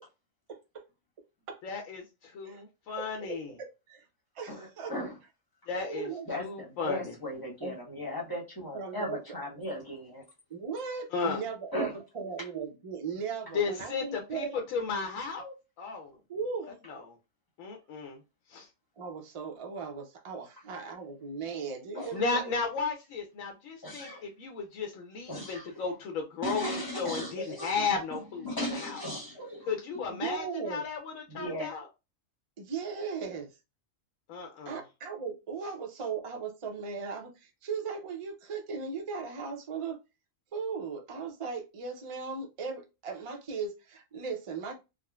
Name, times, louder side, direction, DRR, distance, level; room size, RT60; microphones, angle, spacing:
voice 1, 1.6-2.5 2.9-3.5 5.7-6.1 6.4-7.1 11.1-11.4 13.5-14.5 14.7-16.1 16.9-17.0 17.6-18.2 18.5-18.7 22.1-24.1 24.4-26.6 27.0-28.5 28.8-29.0 29.7-31.8 34.3-34.8, left 5 dB, 80° left, 1.0 m, -34 dB
voice 2, 3.2-4.1 4.4-4.9 5.7-6.3 7.6-7.8 8.7-9.2 10.5-14.6 16.3-16.7 19.0-22.4 30.1-30.8 32.6-33.5 34.7-40.0 40.5-44.7, right 5 dB, 55° right, 0.3 m, -37 dB
voice 3, 4.5-5.1 6.3-10.2 11.7-12.0 21.9-22.5 23.8-24.2 25.3-25.8 26.4-29.7 31.3-31.7, equal, 20° left, 0.8 m, -37 dB
3.6 x 2.0 x 2.3 m
omnidirectional pair, 1.4 m